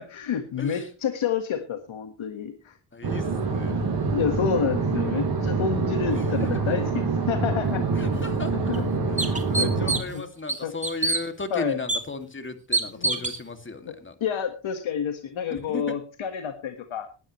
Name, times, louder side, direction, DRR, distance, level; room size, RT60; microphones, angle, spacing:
voice 1, 0.0-2.8 4.1-7.8 8.7-8.8 9.6-10.3 10.6-10.7 11.5-11.8 13.0-13.3 13.8-13.9 14.2-17.1, left 7 dB, 75° left, 7 dB, 1.7 m, -29 dB
voice 2, 2.9-3.8 6.1-6.5 7.9-8.7 9.1-14.1 15.5-16.0, left 3 dB, 25° left, 7 dB, 2.4 m, -36 dB
sound 1, 3.0-10.0, right 4 dB, 50° right, 6.0 m, -26 dB
sound 2, 8.1-8.2 8.7-8.8 9.2-10.2 10.5-11.2 11.9-12.0 12.7-13.4, right 2 dB, 15° right, 2.4 m, -25 dB
20.0 x 11.5 x 3.2 m, 0.35 s
cardioid pair, 85°, 48 cm